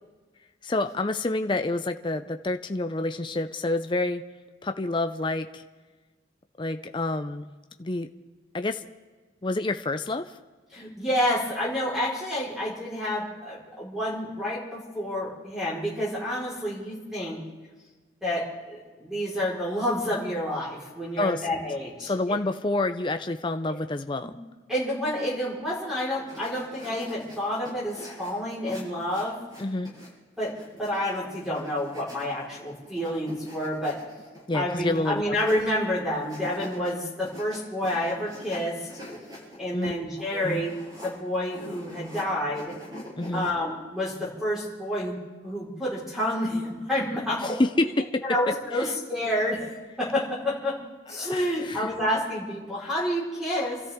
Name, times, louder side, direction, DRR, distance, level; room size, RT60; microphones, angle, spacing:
voice 1, 0.6-4.2 4.6-5.6 6.6-7.5 7.8-8.1 8.5-8.8 9.4-10.3 21.2-21.5 22.0-24.3 29.6-29.9 34.5-35.3 39.7-39.9 40.3-40.7 43.2-43.5 47.4-48.2 48.7-48.9 51.3-51.9, left 2 dB, 25° left, 8 dB, 0.5 m, -28 dB
voice 2, 10.7-17.4 18.2-22.4 24.7-29.5 30.4-34.0 34.5-38.9 39.6-40.8 41.0-42.7 43.3-45.2 45.4-47.9 48.2-49.7 50.0-50.8 51.1-53.8, left 1 dB, ahead, -7 dB, 4.5 m, -29 dB
sound 1, 26.3-30.1 30.4-35.8 36.1-36.9 37.2-42.2 42.5-43.5, left 1 dB, 20° right, 6.5 m, -45 dB
28.5 x 13.5 x 3.7 m, 1.3 s
head